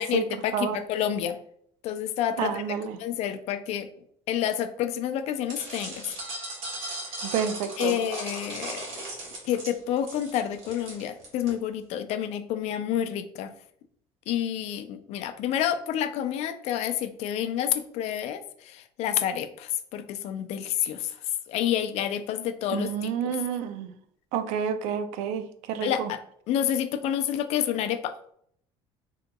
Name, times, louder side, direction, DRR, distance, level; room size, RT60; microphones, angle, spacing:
voice 1, 0.0-1.4 1.8-2.6 3.0-3.9 4.3-6.0 7.1-7.2 7.8-8.9 9.4-13.5 14.3-21.1 21.5-23.4 25.8-26.2 26.5-28.1, left 10 dB, 65° left, 0.4 m, -29 dB
voice 2, 2.4-3.0 7.2-8.0 22.7-23.9 24.3-26.1, right 8 dB, 85° right, 0.4 m, -29 dB
sound 1, 5.5-11.5, right 2 dB, 60° right, 1.4 m, -37 dB
3.7 x 2.8 x 2.2 m
cardioid pair, 125°, 12 cm